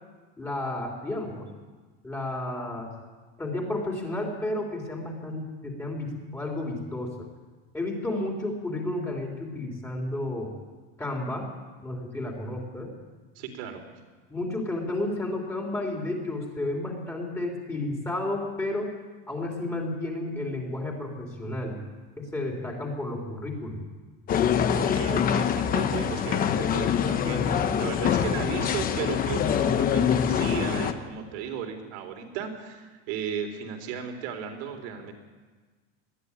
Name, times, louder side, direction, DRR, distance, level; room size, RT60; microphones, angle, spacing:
voice 1, 0.4-1.5 2.0-2.9 3.4-7.1 7.7-10.5 11.0-11.5 11.8-12.9 14.3-18.9 19.3-21.8 22.2-23.8, left 2 dB, 10° left, 0 dB, 3.3 m, -32 dB
voice 2, 13.4-13.8 24.7-35.1, right 7 dB, 70° right, 5 dB, 3.7 m, -35 dB
sound 1, 24.3-30.9, left 8 dB, 25° left, 1.0 m, -24 dB
20.0 x 13.0 x 9.7 m, 1.4 s
cardioid pair, 165°, 32 cm